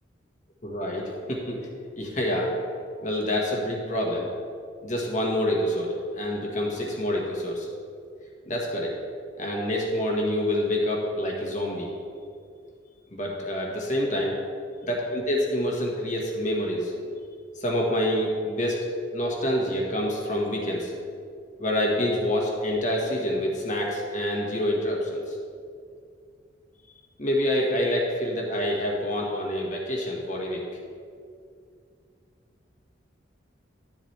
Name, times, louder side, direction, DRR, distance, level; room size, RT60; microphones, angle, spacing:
voice 1, 0.6-1.6 2.0-2.5 3.0-4.3 4.8-7.7 8.5-8.9 9.4-11.9 13.1-14.4 14.8-16.9 17.6-18.9 19.1-20.9 21.6-25.3 27.2-30.6, left 1 dB, 40° left, -1 dB, 1.6 m, -27 dB
12.0 x 7.5 x 3.4 m, 2.3 s
head